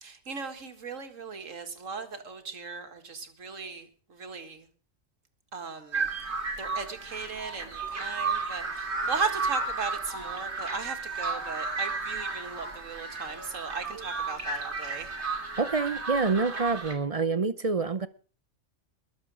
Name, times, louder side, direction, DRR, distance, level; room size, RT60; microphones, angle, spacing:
voice 1, 0.0-4.7 5.5-6.1 6.6-15.1, right 5 dB, 85° right, 2.2 m, -37 dB
sound 1, 5.9-16.9, right 4 dB, 60° right, 3.0 m, -33 dB
voice 2, 15.6-18.1, right 4 dB, 35° right, 0.6 m, -27 dB
21.0 x 7.5 x 6.3 m
omnidirectional pair, 1.3 m